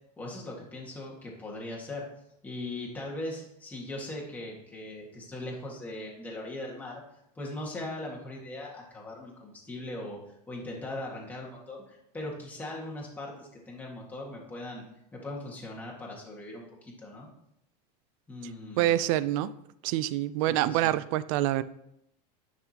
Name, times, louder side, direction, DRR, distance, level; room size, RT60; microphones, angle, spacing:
voice 1, 0.2-2.1 2.4-7.0 7.4-10.2 10.5-14.8 15.1-17.3 18.3-18.9 20.5-20.9, left 1 dB, 10° left, 1.8 m, -39 dB
voice 2, 18.8-19.5 19.8-21.6, right 14 dB, 55° right, 0.4 m, -26 dB
10.5 x 6.1 x 2.9 m
supercardioid pair, 155°, 21 cm